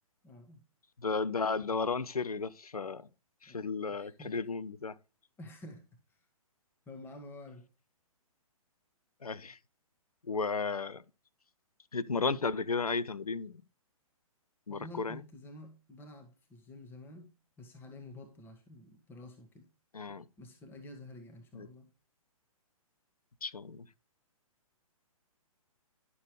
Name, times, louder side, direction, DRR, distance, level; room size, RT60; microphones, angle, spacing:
voice 1, 0.2-0.6 3.5-3.6 4.0-4.3 5.4-6.2 6.9-7.7 14.7-17.3 17.6-19.6 20.4-21.9, left 1 dB, 10° left, 1.4 m, -50 dB
voice 2, 1.0-3.1 3.4-5.0 9.2-9.6 10.3-11.0 11.9-13.6 14.7-15.2 19.9-20.3 21.5-21.7 23.4-23.9, left 4 dB, 80° left, 0.8 m, -34 dB
11.0 x 7.0 x 3.2 m
figure-of-eight pair, 125°, 19 cm